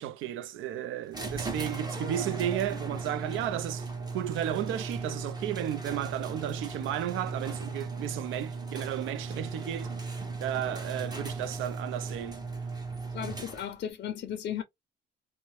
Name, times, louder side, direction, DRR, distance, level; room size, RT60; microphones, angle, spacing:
voice 1, 0.0-3.8 4.1-9.9 10.4-12.4, right 11 dB, 85° right, 0.4 m, -33 dB
sound 1, 1.1-13.9, right 4 dB, 20° right, 0.9 m, -37 dB
voice 2, 13.1-14.6, left 9 dB, 60° left, 0.5 m, -35 dB
2.7 x 2.1 x 2.9 m
cardioid pair, 90°, 20 cm